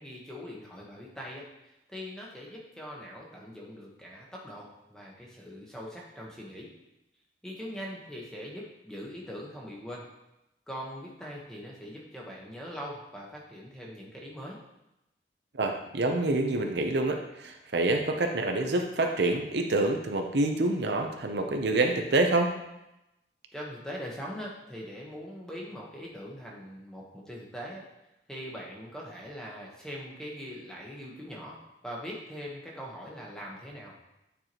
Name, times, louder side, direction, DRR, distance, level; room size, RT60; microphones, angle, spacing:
voice 1, 0.0-6.7 7.4-10.0 10.7-14.6 23.5-27.9 28.3-31.6 31.8-33.9, equal, 5° left, -3 dB, 1.1 m, -42 dB
voice 2, 15.5-22.5, right 2 dB, 70° right, 4 dB, 0.7 m, -27 dB
8.9 x 4.6 x 3.0 m, 0.91 s
head